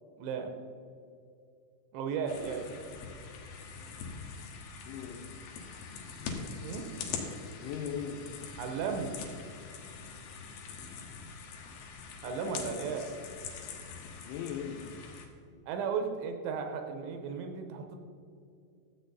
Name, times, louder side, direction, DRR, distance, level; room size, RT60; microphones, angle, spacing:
voice 1, 0.2-0.5 1.9-2.9 6.6-6.9 8.6-9.1 12.2-13.0 15.7-18.0, right 6 dB, 80° right, 5 dB, 3.1 m, -35 dB
sound 1, 2.3-15.3, left 5 dB, 70° left, 3.0 m, -43 dB
voice 2, 4.9-5.2 7.6-8.2 12.3-12.9 14.3-14.9, left 8 dB, 85° left, 4 dB, 3.4 m, -39 dB
13.0 x 7.9 x 4.1 m, 2.4 s
omnidirectional pair, 5.7 m